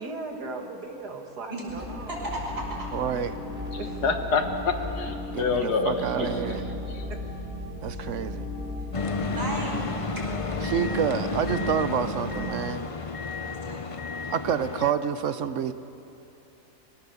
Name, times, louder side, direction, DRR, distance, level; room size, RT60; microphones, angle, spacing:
voice 1, 0.0-2.2 3.8-4.0 5.5-5.7 6.1-6.7 7.1-7.2, right 3 dB, 85° right, 3 dB, 2.3 m, -37 dB
sound 1, 1.7-12.5, equal, 20° right, 4.6 m, -36 dB
voice 2, 2.1-2.9 5.4-5.5 7.9-8.0 8.8-9.7 10.2-10.3 13.4-14.3, right 1 dB, 35° right, -3 dB, 5.5 m, -36 dB
voice 3, 2.9-3.4 5.3-6.6 7.8-8.5 10.6-12.9 14.3-15.7, right 8 dB, 60° right, 12 dB, 0.9 m, -28 dB
voice 4, 4.0-6.0 7.0-7.1, left 5 dB, 85° left, 6 dB, 1.9 m, -26 dB
sound 2, 8.9-14.9, left 4 dB, 40° left, 0.4 m, -32 dB
23.0 x 18.0 x 7.0 m, 2.7 s
omnidirectional pair, 1.7 m